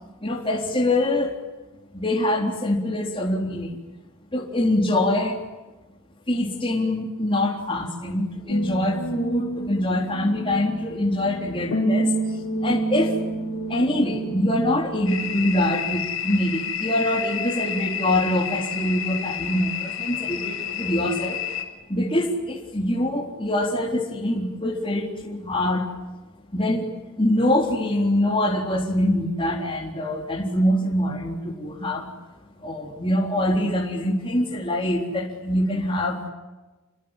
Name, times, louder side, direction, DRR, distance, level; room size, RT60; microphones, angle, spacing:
voice 1, 0.2-1.3 1.9-3.8 4.3-5.4 6.3-13.1 13.7-21.4 21.9-25.9 26.5-26.9 27.2-32.1 32.6-36.3, left 1 dB, 25° left, 0 dB, 3.6 m, -24 dB
sound 1, 8.5-14.8, right 2 dB, 90° left, 4.4 m, -29 dB
sound 2, 15.1-21.6, left 8 dB, 60° left, 4.8 m, -30 dB
28.5 x 23.0 x 9.0 m, 1.2 s
head